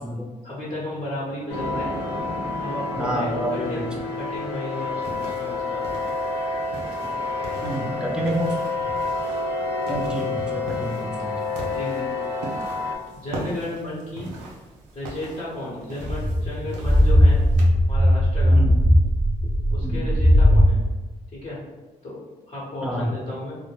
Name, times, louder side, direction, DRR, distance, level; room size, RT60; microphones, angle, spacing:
voice 1, 0.4-1.9 2.6-3.9 4.1-5.8 11.6-12.1 13.1-14.3 14.9-17.4 17.9-18.7 19.7-20.8 21.3-21.6 22.0-22.2 22.5-23.6, left 1 dB, 45° left, -6 dB, 1.0 m, -33 dB
sound 1, 1.5-13.0, left 3 dB, 75° left, 0.6 m, -28 dB
voice 2, 3.0-3.8 7.6-8.6 9.9-11.4 18.5-18.7 19.8-20.0 22.8-23.1, right 1 dB, 5° right, -1 dB, 0.6 m, -28 dB
sound 2, 5.0-17.6, right 2 dB, 90° right, 0.5 m, -40 dB
sound 3, 16.0-20.7, equal, 20° left, 0.9 m, -17 dB
2.1 x 2.0 x 3.2 m, 1.2 s
hypercardioid pair, 45°, 18 cm